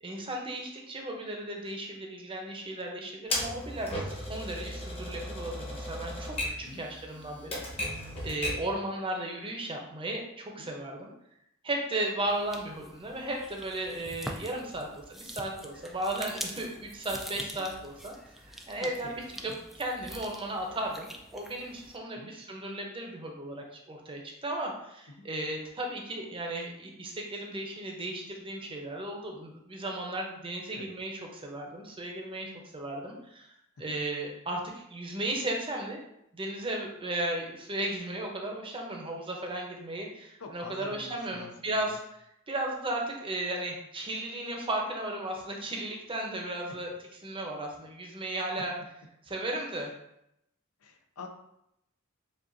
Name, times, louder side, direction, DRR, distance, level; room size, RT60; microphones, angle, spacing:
voice 1, 0.0-7.9 8.2-11.1 11.6-18.1 18.7-33.5 33.8-36.0 36.3-42.0 42.5-46.9 47.2-48.7 49.3-49.9, right 1 dB, 25° right, 1 dB, 0.7 m, -35 dB
Typewriter, 3.3-8.7, left 1 dB, 25° left, 1.0 m, -36 dB
sound 1, 12.3-22.0, equal, ahead, 0.3 m, -44 dB
voice 2, 18.8-19.5 22.1-22.3 25.2-25.3 30.7-30.9 33.8-34.0 40.4-42.0 46.7-46.8 48.6-48.7 49.6-49.7 50.8-51.3, left 3 dB, 75° left, 4 dB, 0.6 m, -46 dB
7.2 x 2.4 x 2.6 m, 0.79 s
head